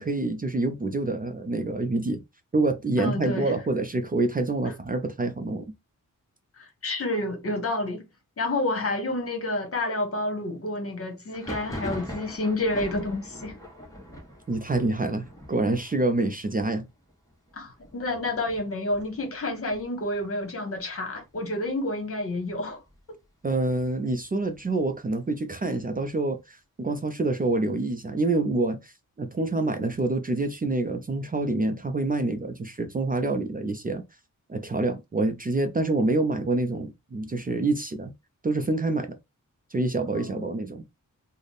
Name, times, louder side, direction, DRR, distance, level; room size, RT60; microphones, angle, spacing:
voice 1, 0.0-2.2 2.5-5.7 14.5-16.8 23.4-28.9 29.2-34.0 34.5-38.1 38.4-39.2 39.7-40.8, right 2 dB, 25° right, 0.4 m, -27 dB
voice 2, 3.0-3.5 4.6-4.7 6.6-8.0 8.4-13.6 17.5-22.8 23.1-23.2 40.1-40.5, left 2 dB, 45° left, 1.1 m, -29 dB
Thunder, 11.3-20.8 21.1-21.8 22.0-23.0 23.4-25.1, equal, 10° left, 1.1 m, -43 dB
3.3 x 2.1 x 3.9 m
wide cardioid pair, 175°, 33 cm